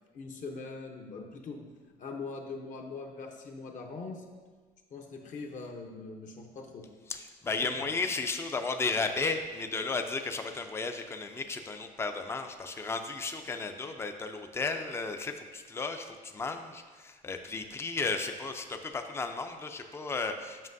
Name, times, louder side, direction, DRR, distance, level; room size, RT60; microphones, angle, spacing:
voice 1, 0.1-1.6 2.0-4.2 4.9-6.9 7.6-7.9, left 4 dB, 50° left, 3 dB, 0.7 m, -42 dB
voice 2, 7.1-20.7, left 4 dB, 15° left, 6 dB, 0.4 m, -34 dB
7.4 x 5.5 x 2.6 m, 1.4 s
cardioid pair, 110°, 17 cm